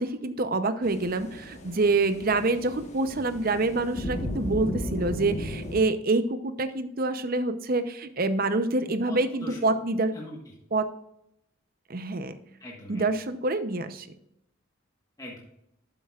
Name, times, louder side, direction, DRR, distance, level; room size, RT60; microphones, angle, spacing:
voice 1, 0.0-10.1 10.7-10.9 11.9-12.4 12.9-14.1, right 3 dB, 45° right, 11 dB, 0.7 m, -26 dB
sound 1, 0.8-5.8, left 1 dB, 35° left, 1.3 m, -35 dB
voice 2, 9.0-9.7 10.1-10.5 12.6-13.1 15.2-15.4, left 1 dB, 15° left, -3 dB, 1.4 m, -41 dB
12.0 x 7.7 x 2.4 m, 0.80 s
head